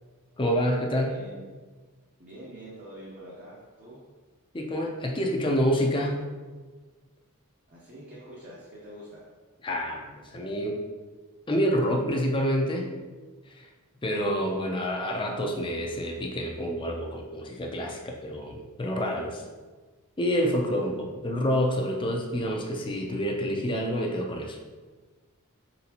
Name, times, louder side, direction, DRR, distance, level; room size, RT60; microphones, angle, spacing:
voice 1, 0.4-1.2 4.5-6.2 9.6-10.8 11.5-12.9 13.5-13.7 14.0-19.4 20.2-24.6, equal, 20° left, 1 dB, 0.5 m, -28 dB
voice 2, 1.0-1.4 2.2-4.0 7.7-9.2, right 1 dB, 40° right, -7 dB, 0.8 m, -45 dB
4.3 x 4.0 x 2.9 m, 1.4 s
head